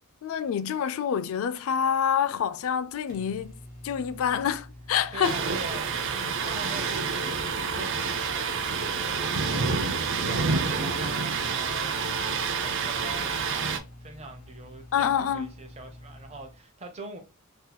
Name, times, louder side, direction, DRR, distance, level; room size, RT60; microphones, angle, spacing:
voice 1, 0.2-3.5 3.8-5.4 14.9-15.5, left 8 dB, 65° left, 0.3 m, -27 dB
Microwave oven, 1.5-16.6, left 1 dB, 40° left, 1.3 m, -48 dB
voice 2, 5.1-5.9 6.2-7.2 7.6-17.2, right 2 dB, 30° right, 0.8 m, -43 dB
Thunder, 5.2-13.8, right 5 dB, 55° right, 0.5 m, -28 dB
3.8 x 2.7 x 2.2 m
head